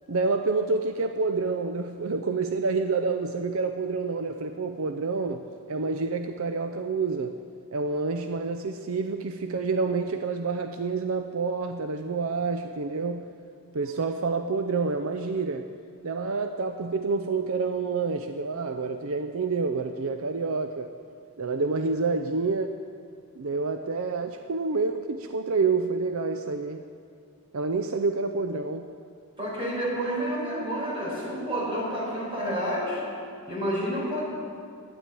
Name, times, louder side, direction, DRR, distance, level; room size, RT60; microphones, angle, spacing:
voice 1, 0.1-7.4 7.7-13.3 13.7-15.7 16.0-20.9 21.4-22.8 23.4-26.8 27.5-28.9, right 4 dB, 65° right, 7 dB, 0.5 m, -28 dB
voice 2, 29.4-33.0 33.5-34.2, equal, 25° right, -5 dB, 4.7 m, -29 dB
12.5 x 9.8 x 8.8 m, 2.3 s
head